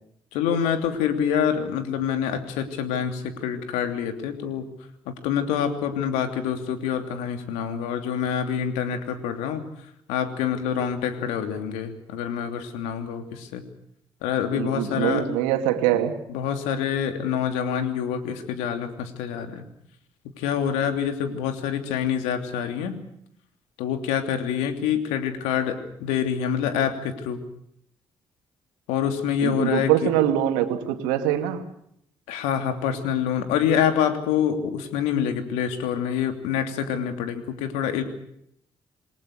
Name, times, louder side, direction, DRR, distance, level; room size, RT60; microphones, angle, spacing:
voice 1, 0.3-4.7 5.1-9.6 10.1-13.6 14.2-15.3 16.3-19.6 20.4-22.9 23.8-27.4 28.9-30.1 32.3-38.0, left 8 dB, 85° left, 3.0 m, -26 dB
voice 2, 14.5-16.2 29.4-31.6, right 11 dB, 85° right, 2.4 m, -23 dB
28.0 x 21.5 x 6.6 m
hypercardioid pair, 45°, 12 cm